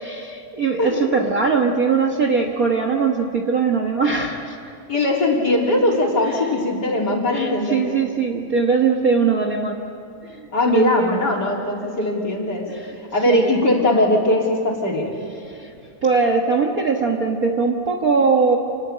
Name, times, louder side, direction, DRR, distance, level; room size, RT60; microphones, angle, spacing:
voice 1, 0.0-4.6 6.2-6.3 7.3-9.8 10.2-11.3 12.7-12.9 13.3-13.6 15.5-15.7 16.0-18.6, right 5 dB, 80° right, 3 dB, 0.8 m, -21 dB
voice 2, 4.9-7.9 10.5-12.7 13.0-15.1, left 1 dB, 30° left, -1 dB, 3.6 m, -20 dB
28.0 x 19.0 x 9.0 m, 2.5 s
omnidirectional pair, 3.9 m